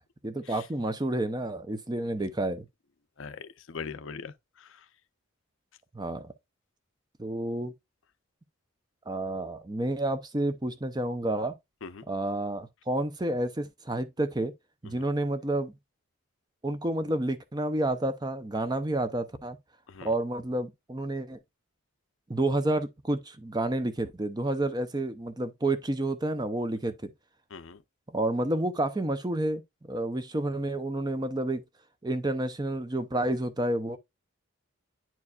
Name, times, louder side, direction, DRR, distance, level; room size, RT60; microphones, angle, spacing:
voice 1, 0.2-2.7 5.9-6.3 7.2-7.7 9.1-11.5 12.1-14.5 14.8-15.7 16.6-19.6 20.0-21.4 22.3-27.1 28.1-29.6 29.9-31.6 32.0-34.0, right 1 dB, 20° right, 0.6 m, -30 dB
voice 2, 3.2-4.3 11.8-12.0 19.9-20.1 27.5-27.8, left 5 dB, 65° left, 0.6 m, -40 dB
9.6 x 4.6 x 2.4 m
head